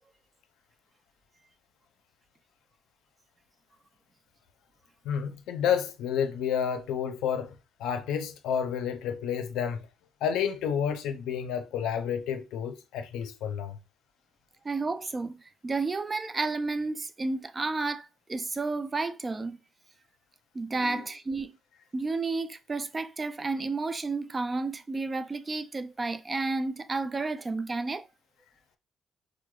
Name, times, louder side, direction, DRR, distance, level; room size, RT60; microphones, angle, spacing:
voice 1, 5.0-7.5 7.8-9.9 10.2-13.8 20.9-21.0, left 8 dB, 90° left, 0.4 m, -30 dB
voice 2, 14.6-15.4 15.6-19.6 20.5-21.5 21.9-28.1, right 3 dB, 30° right, 0.3 m, -31 dB
4.6 x 2.0 x 2.2 m
cardioid pair, 90°, 0 cm